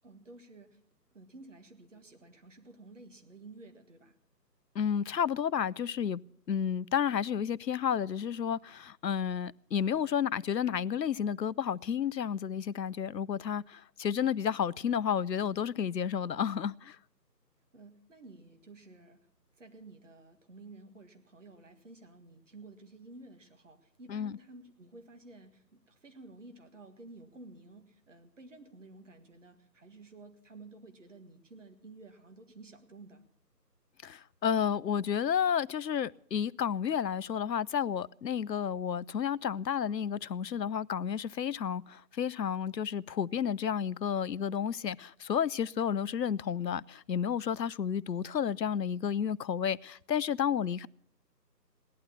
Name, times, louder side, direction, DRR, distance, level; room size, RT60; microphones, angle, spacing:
voice 1, 0.0-0.8 1.1-4.1 17.7-19.3 19.6-33.2, right 2 dB, 45° right, 1.8 m, -52 dB
voice 2, 4.8-6.2 6.5-17.0 24.1-24.4 34.0-50.9, left 8 dB, 80° left, 0.6 m, -31 dB
17.0 x 11.5 x 7.1 m
figure-of-eight pair, 155°, 50 cm